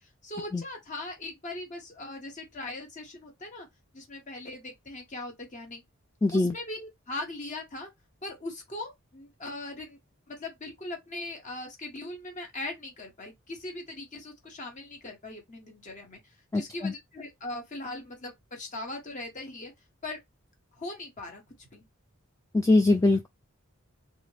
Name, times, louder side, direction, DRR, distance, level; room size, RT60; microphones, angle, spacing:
voice 1, 0.0-3.7 3.9-5.8 6.3-7.9 8.2-10.0 10.3-16.2 16.5-19.7 20.0-20.2 20.8-21.4 21.7-21.8, left 2 dB, 40° left, 1.3 m, -40 dB
voice 2, 6.2-6.5 16.5-16.9 22.5-23.3, left 2 dB, 15° left, 0.3 m, -22 dB
3.5 x 2.5 x 3.2 m
head